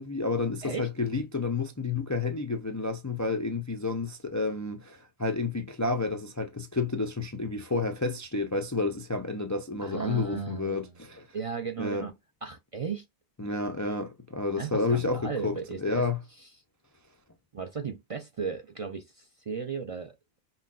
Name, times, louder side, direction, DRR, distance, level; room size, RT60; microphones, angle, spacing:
voice 1, 0.0-11.2 11.8-12.1 13.4-16.2, left 3 dB, 30° left, 0.3 m, -30 dB
voice 2, 9.8-11.0 11.3-12.1 12.4-13.0 14.6-16.1 16.4-16.5 17.5-20.4, right 6 dB, 45° right, 0.4 m, -36 dB
5.6 x 2.2 x 2.4 m
omnidirectional pair, 1.0 m